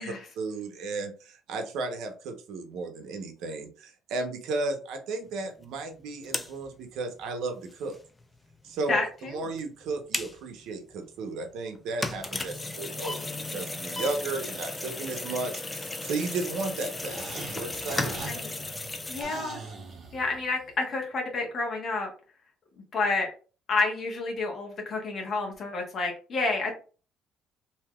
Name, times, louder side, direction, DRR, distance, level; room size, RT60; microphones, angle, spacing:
voice 1, 0.0-7.9 8.6-18.1, right 3 dB, 75° right, 4 dB, 0.8 m, -34 dB
sound 1, 5.3-5.4 5.6-5.7 6.1-8.5 8.8-9.1 9.4-10.5 10.9-11.1 11.4-19.2, left 2 dB, 15° left, 0.4 m, -35 dB
voice 2, 8.9-9.5 18.0-18.5 19.1-19.6 20.1-22.1 22.9-23.3 23.7-26.7, left 3 dB, 40° left, 1 dB, 1.1 m, -29 dB
sound 2, 17.0-20.7, right 3 dB, 40° right, 0.9 m, -42 dB
3.4 x 2.8 x 2.3 m, 0.37 s
cardioid pair, 135°, 0 cm